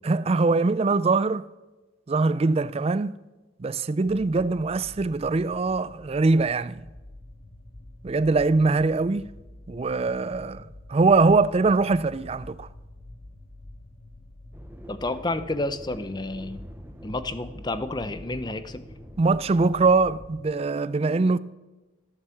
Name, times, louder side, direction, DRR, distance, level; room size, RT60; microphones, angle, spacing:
voice 1, 0.0-1.4 2.1-3.2 3.6-6.8 8.0-9.2 9.7-12.7 19.2-21.4, right 3 dB, 30° right, 0.4 m, -22 dB
sound 1, 4.0-20.4, left 1 dB, 65° left, 1.3 m, -47 dB
sound 2, 14.5-19.8, right 1 dB, 10° right, 0.8 m, -46 dB
voice 2, 14.9-16.7 17.0-18.9, left 2 dB, 25° left, 0.7 m, -30 dB
14.5 x 9.8 x 7.0 m
head